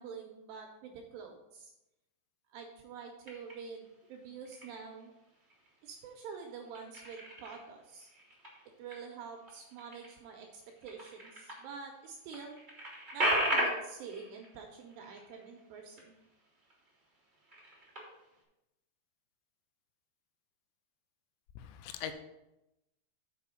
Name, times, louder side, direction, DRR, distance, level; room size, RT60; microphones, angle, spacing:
voice 1, 0.0-1.7 2.5-5.1 5.8-8.1 8.8-12.6 13.1-16.1, right 5 dB, 80° right, 2 dB, 2.6 m, -47 dB
sound 1, 3.2-3.9 4.3-5.0 5.4-6.2 6.4-11.7 12.0-12.1 12.3-16.3 16.6-16.9 17.3-18.3, right 1 dB, 35° right, 0.7 m, -37 dB
voice 2, 21.6-22.1, left 9 dB, 85° left, 8 dB, 3.1 m, -41 dB
7.5 x 5.5 x 5.1 m, 0.93 s
omnidirectional pair, 5.6 m